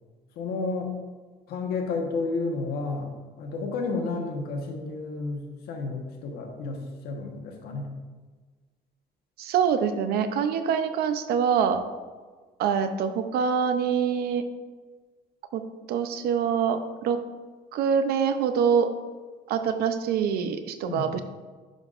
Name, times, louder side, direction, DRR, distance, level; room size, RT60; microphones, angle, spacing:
voice 1, 0.3-0.9 1.5-7.9 20.8-21.1, left 3 dB, 85° left, 2 dB, 1.2 m, -31 dB
voice 2, 9.4-11.8 12.6-14.4 15.5-15.6 15.9-17.2 17.7-18.9 19.5-21.2, right 7 dB, 85° right, 9 dB, 0.6 m, -25 dB
10.5 x 5.4 x 2.5 m, 1.4 s
cardioid pair, 165°, 16 cm